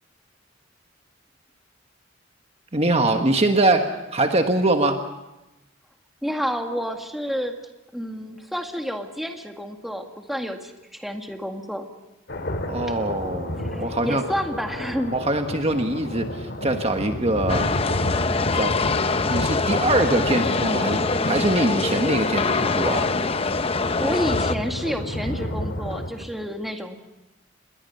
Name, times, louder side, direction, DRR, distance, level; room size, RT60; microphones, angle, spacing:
voice 1, 2.7-5.0 12.7-14.2 15.1-17.7 18.5-18.7 19.3-23.1, right 2 dB, 30° right, 5 dB, 1.4 m, -23 dB
voice 2, 6.2-7.5 7.9-11.9 13.6-15.1 24.0-27.0, equal, ahead, 3 dB, 1.9 m, -29 dB
sound 1, 12.3-26.1, left 1 dB, 60° left, 2.5 m, -31 dB
sound 2, 17.5-24.5, left 4 dB, 30° left, 0.7 m, -24 dB
27.5 x 22.0 x 5.6 m, 0.99 s
head